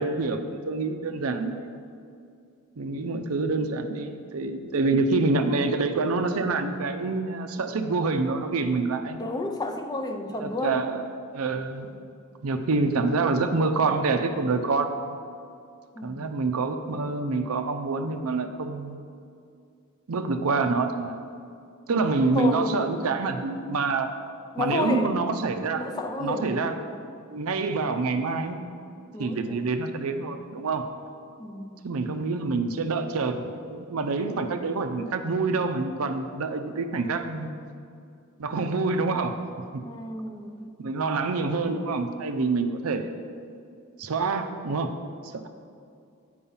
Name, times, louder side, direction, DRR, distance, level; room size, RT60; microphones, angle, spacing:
voice 1, 0.0-1.8 2.8-9.2 10.3-11.0 11.3-11.9 12.4-15.2 16.0-19.0 20.1-21.2 21.9-24.1 24.6-25.8 26.2-26.8 27.3-28.6 29.2-30.8 31.8-37.6 38.4-39.3 39.7-39.8 40.8-43.1 44.0-44.9 45.4-45.5, right 3 dB, 85° right, 6 dB, 0.5 m, -27 dB
voice 2, 9.2-10.9 15.9-16.3 22.2-23.1 24.5-25.2 25.8-26.6 29.1-29.8 31.4-31.8 39.8-40.8, left 2 dB, 20° left, 4 dB, 0.5 m, -31 dB
8.5 x 4.7 x 5.5 m, 2.4 s
head